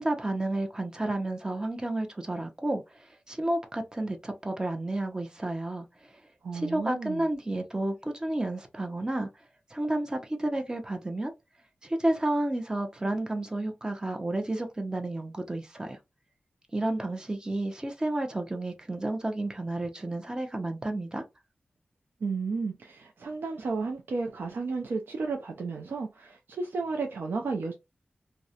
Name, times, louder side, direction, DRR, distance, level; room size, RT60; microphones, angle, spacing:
voice 1, 0.0-2.8 3.3-5.9 6.5-9.3 9.7-11.3 11.8-16.0 16.7-21.2, right 1 dB, 20° right, 0.6 m, -31 dB
voice 2, 6.4-7.3 22.2-27.7, right 4 dB, 70° right, 0.4 m, -33 dB
2.3 x 2.0 x 2.7 m
wide cardioid pair, 70°, 4 cm